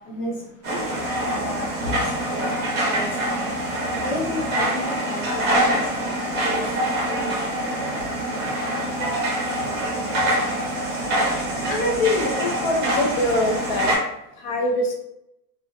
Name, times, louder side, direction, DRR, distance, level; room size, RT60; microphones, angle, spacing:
voice 1, 0.1-0.4 1.3-2.4 2.8-3.1 4.0-5.8 6.3-6.9, left 1 dB, 85° left, -3 dB, 1.2 m, -32 dB
sound 1, 0.6-14.0, right 1 dB, 25° right, 0.7 m, -25 dB
voice 2, 11.7-13.9 14.4-14.9, left 2 dB, 35° left, 1 dB, 0.4 m, -23 dB
2.4 x 2.1 x 2.5 m, 0.82 s
supercardioid pair, 140°, 46 cm